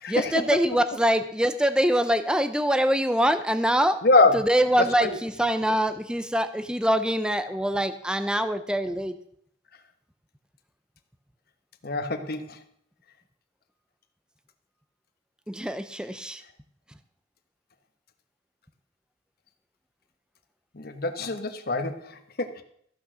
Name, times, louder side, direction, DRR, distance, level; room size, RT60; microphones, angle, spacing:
voice 1, 0.1-4.0 4.3-9.2 15.5-16.4, right 1 dB, 5° right, 10 dB, 0.6 m, -24 dB
voice 2, 4.0-4.4 5.0-5.2 11.8-12.6 20.7-22.6, left 3 dB, 55° left, 7 dB, 1.2 m, -24 dB
14.5 x 6.4 x 6.2 m, 0.67 s
head